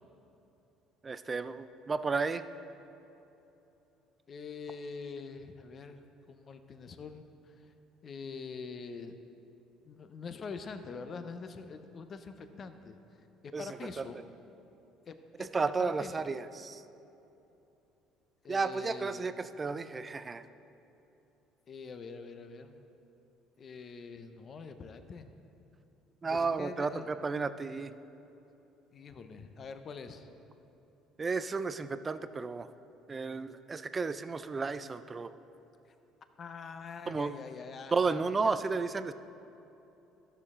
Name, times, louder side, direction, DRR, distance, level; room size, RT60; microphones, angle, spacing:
voice 1, 1.0-2.4 13.5-14.1 15.4-16.8 18.5-20.5 26.2-27.9 31.2-32.7 33.1-35.3 37.1-37.3 37.9-39.1, right 4 dB, 25° right, 12 dB, 0.4 m, -33 dB
voice 2, 4.3-7.7 8.0-9.1 9.9-13.0 13.4-14.2 15.1-16.1 18.4-19.2 21.7-22.8 23.6-25.3 26.3-27.1 28.9-30.3 36.4-38.5, left 5 dB, 40° left, 8 dB, 0.6 m, -44 dB
13.0 x 6.7 x 3.6 m, 3.0 s
cardioid pair, 100°, 0 cm